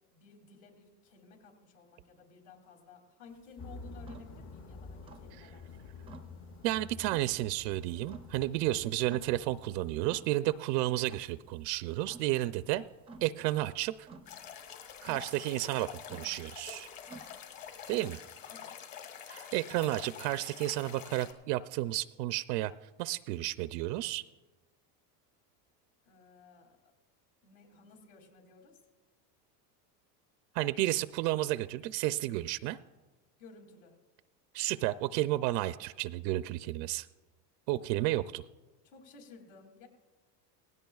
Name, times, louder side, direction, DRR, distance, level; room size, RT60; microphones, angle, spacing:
voice 1, 0.0-5.8 18.5-18.8 26.0-26.9 27.4-28.8 33.4-34.0 38.0-38.1 38.8-39.9, left 4 dB, 70° left, 2 dB, 2.8 m, -55 dB
sound 1, 3.3-18.0, right 3 dB, 10° right, 0.4 m, -56 dB
sound 2, 3.6-9.9, left 3 dB, 25° left, 0.6 m, -49 dB
voice 2, 6.6-12.8 13.2-14.1 15.0-16.9 17.9-18.2 19.3-22.7 23.0-24.2 30.5-32.8 34.5-37.1 37.7-38.4, right 16 dB, 80° right, 13 dB, 0.5 m, -32 dB
sound 3, 14.3-21.3, left 8 dB, 45° left, 1.8 m, -47 dB
18.5 x 16.0 x 2.3 m, 1.2 s
supercardioid pair, 130°, 48 cm